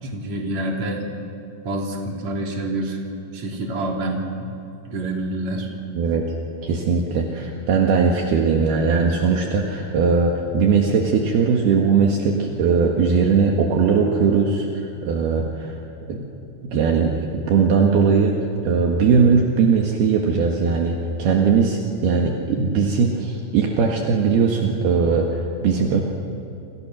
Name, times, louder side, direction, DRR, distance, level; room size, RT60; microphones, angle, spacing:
voice 1, 0.0-1.0 1.6-3.0 3.3-4.5 4.9-5.7, right 1 dB, 40° right, 0 dB, 4.3 m, -27 dB
voice 2, 6.6-15.8 16.1-16.3 16.6-18.3 18.6-26.0, right 5 dB, 65° right, 0 dB, 3.6 m, -19 dB
28.5 x 28.0 x 6.4 m, 2.8 s
omnidirectional pair, 5.1 m